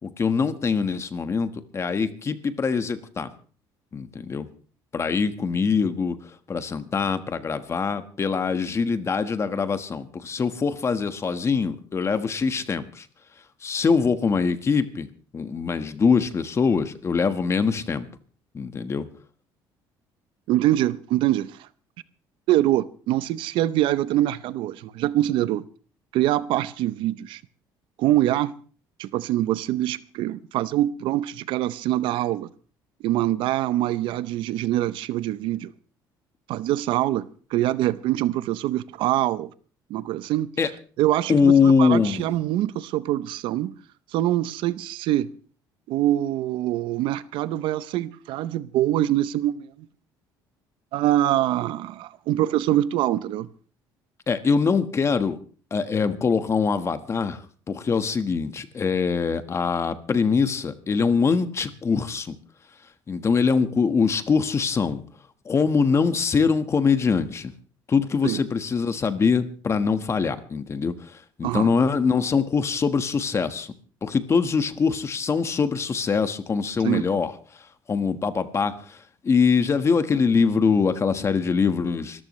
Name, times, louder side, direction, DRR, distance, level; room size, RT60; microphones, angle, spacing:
voice 1, 0.0-3.3 3.9-4.4 4.9-13.1 13.6-15.1 15.3-18.1 18.5-19.1 40.6-40.7 41.3-42.3 54.3-55.4 55.7-62.4 63.1-65.0 65.4-67.5 67.9-73.7 74.0-77.3 77.6-82.2, left 5 dB, 35° left, 1.4 m, -23 dB
voice 2, 20.5-21.5 22.5-25.7 26.1-27.4 28.0-28.5 29.0-32.5 33.0-35.7 36.5-39.5 39.9-40.5 41.0-43.8 44.1-45.3 45.9-49.7 50.9-53.5 68.2-68.4 71.4-71.7 76.8-77.0, right 14 dB, 75° right, 0.7 m, -24 dB
25.5 x 14.0 x 3.2 m
cardioid pair, 105°, 9 cm